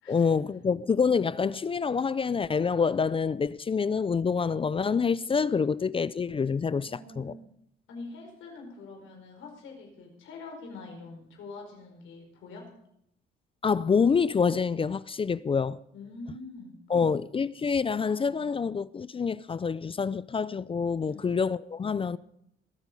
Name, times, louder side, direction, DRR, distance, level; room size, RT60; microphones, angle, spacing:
voice 1, 0.1-6.9 7.2-7.3 13.6-15.8 16.9-22.2, left 5 dB, 25° left, 0.4 m, -27 dB
voice 2, 6.6-7.4 7.9-12.6 15.9-16.8 21.1-21.3, left 3 dB, 80° left, 4.8 m, -45 dB
22.0 x 8.2 x 5.3 m
cardioid pair, 90°, 20 cm